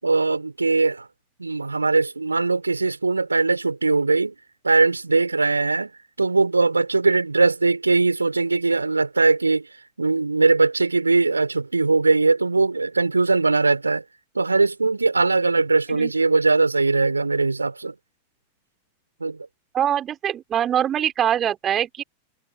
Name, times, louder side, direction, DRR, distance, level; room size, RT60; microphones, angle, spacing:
voice 1, 0.0-1.1 1.4-4.4 4.6-5.9 6.2-9.7 10.0-14.0 14.4-17.9 19.2-19.4, right 3 dB, 80° right, 5.4 m, -20 dB
voice 2, 19.7-22.0, right 10 dB, 25° right, 4.8 m, -23 dB
figure-of-eight pair, 90°, 0 cm